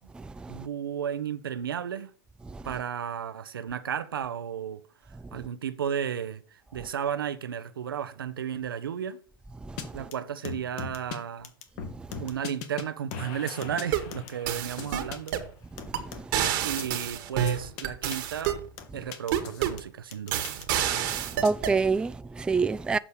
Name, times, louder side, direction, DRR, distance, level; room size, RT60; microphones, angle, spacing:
voice 1, 0.5-2.1 2.6-4.8 5.3-6.4 6.7-9.2 9.9-11.5 12.2-15.4 16.6-18.6 18.9-20.5, right 8 dB, 85° right, 0.8 m, -33 dB
sound 1, 9.8-9.9 10.1-10.2 10.4-11.2 11.4-12.8 13.1-15.3 15.8-16.5 16.8-17.0 17.5-17.8 18.1-18.2 18.4-19.8 20.1-21.5, left 7 dB, 55° left, 1.5 m, -39 dB
sound 2, 13.7-14.1 14.5-15.5 15.9-16.0 16.3-18.6 19.3-19.8 20.3-21.8, right 10 dB, 60° right, 1.5 m, -28 dB
voice 2, 21.1-23.0, right 4 dB, 10° right, 0.3 m, -26 dB
7.4 x 5.2 x 6.3 m
hypercardioid pair, 100°, 11 cm